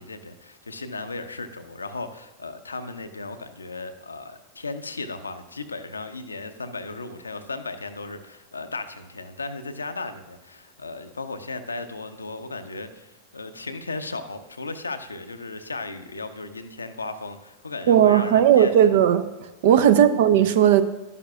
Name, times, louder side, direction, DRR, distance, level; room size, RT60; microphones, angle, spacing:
voice 1, 0.0-18.9 19.7-20.0, left 3 dB, 80° left, 9 dB, 0.6 m, -36 dB
voice 2, 17.9-19.2 19.6-20.8, right 10 dB, 55° right, 11 dB, 0.6 m, -16 dB
12.0 x 11.0 x 2.4 m, 1.1 s
figure-of-eight pair, 90°, 0 cm